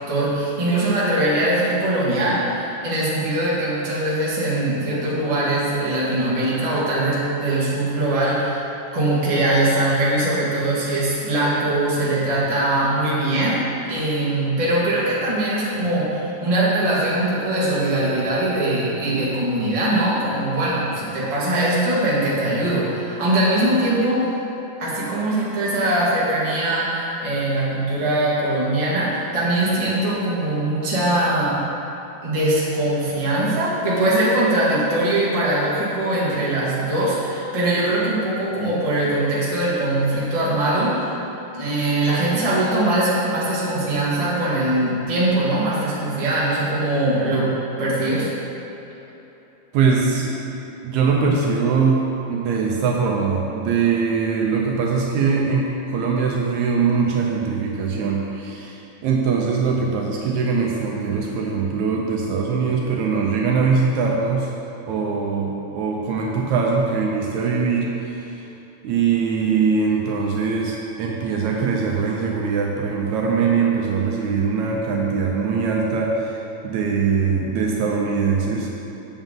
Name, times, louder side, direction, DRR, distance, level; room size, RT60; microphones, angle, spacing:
voice 1, 0.1-8.6 8.9-13.6 13.9-24.2 24.8-31.6 32.2-41.1 41.5-47.5 47.8-48.3, right 1 dB, 20° right, -8 dB, 0.8 m, -21 dB
voice 2, 49.7-50.4 50.8-64.5 64.9-68.4 68.8-78.7, right 5 dB, 75° right, -1 dB, 1.8 m, -22 dB
8.0 x 7.1 x 3.8 m, 3.0 s
omnidirectional pair, 3.6 m